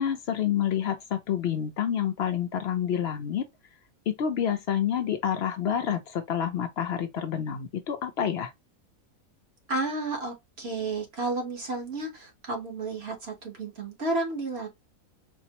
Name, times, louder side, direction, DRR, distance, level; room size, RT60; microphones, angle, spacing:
voice 1, 0.0-3.4 4.1-8.5, left 9 dB, 65° left, 0.6 m, -28 dB
voice 2, 9.7-14.7, right 2 dB, 50° right, 1.2 m, -32 dB
4.3 x 2.0 x 2.8 m
omnidirectional pair, 1.5 m